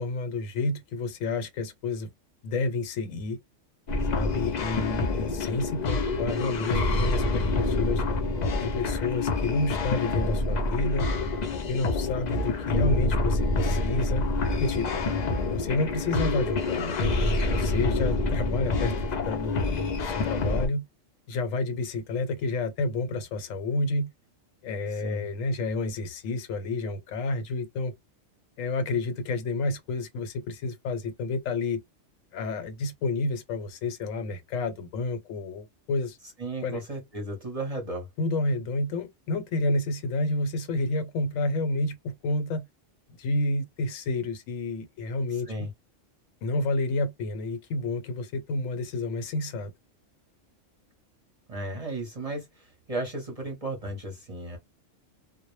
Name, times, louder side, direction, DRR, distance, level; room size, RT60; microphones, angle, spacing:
voice 1, 0.0-2.1 2.4-3.4 4.1-8.0 8.6-11.1 11.7-14.3 14.6-15.0 15.5-16.9 17.5-18.9 19.3-20.9 21.3-24.1 24.6-27.9 28.6-31.8 32.3-36.2 36.6-36.8 38.2-42.7 43.1-45.5 46.4-49.7, left 2 dB, 85° left, 1.0 m, -30 dB
sound 1, 3.9-20.7, left 2 dB, 60° left, 0.4 m, -27 dB
voice 2, 15.1-15.6 18.5-18.7 25.0-25.3 36.4-38.1 45.5-45.7 51.5-54.6, right 1 dB, 35° right, 0.7 m, -35 dB
2.1 x 2.0 x 3.0 m
omnidirectional pair, 1.3 m